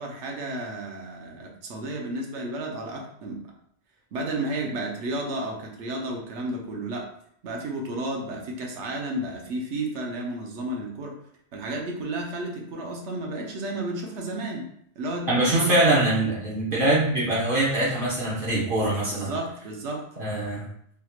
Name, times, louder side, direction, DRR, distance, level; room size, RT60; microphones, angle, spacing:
voice 1, 0.0-3.5 4.1-7.1 7.4-11.2 11.5-14.7 15.0-15.8 19.1-20.1, right 1 dB, 75° right, 0 dB, 1.0 m, -32 dB
voice 2, 15.3-19.3 20.2-20.7, right 1 dB, 50° right, -7 dB, 1.2 m, -23 dB
3.5 x 2.9 x 2.4 m, 0.67 s
omnidirectional pair, 1.2 m